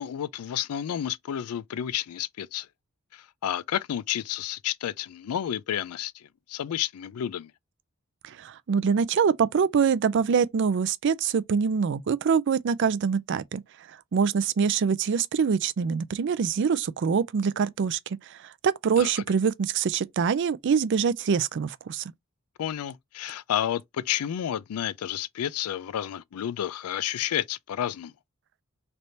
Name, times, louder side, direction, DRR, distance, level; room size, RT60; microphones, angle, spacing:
voice 1, 0.0-2.7 3.1-7.5 19.0-19.1 22.6-28.1, left 10 dB, 85° left, 0.3 m, -31 dB
voice 2, 8.2-13.6 14.1-18.0 18.6-22.1, right 6 dB, 55° right, 0.4 m, -24 dB
3.3 x 2.6 x 4.2 m
head